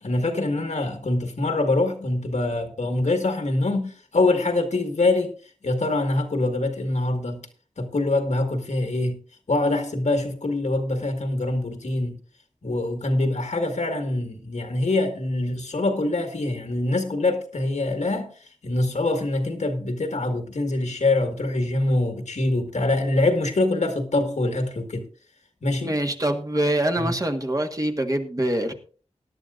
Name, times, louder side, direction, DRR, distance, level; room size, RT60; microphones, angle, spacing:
voice 1, 0.0-5.3 5.6-7.4 7.8-9.2 9.5-12.2 12.6-18.3 18.6-25.1 25.6-25.9 27.0-27.1, left 2 dB, 75° left, 1.8 m, -24 dB
voice 2, 25.8-28.7, right 1 dB, 30° right, 1.7 m, -24 dB
18.5 x 10.5 x 2.5 m
wide cardioid pair, 55°, 12 cm